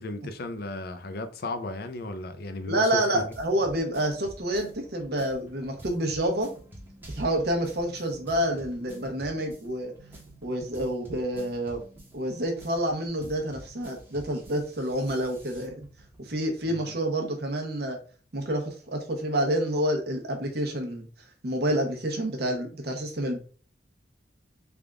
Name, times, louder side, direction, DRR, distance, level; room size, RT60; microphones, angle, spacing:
voice 1, 0.0-3.3 16.7-16.9, left 2 dB, 55° left, 0.5 m, -35 dB
voice 2, 2.7-6.5 7.1-9.9 10.4-11.8 12.1-15.8 16.2-18.0 18.3-21.1 21.4-23.4, right 1 dB, 60° right, 0.8 m, -28 dB
sound 1, 3.0-16.7, right 1 dB, 10° right, 1.0 m, -48 dB
3.4 x 2.4 x 3.5 m
head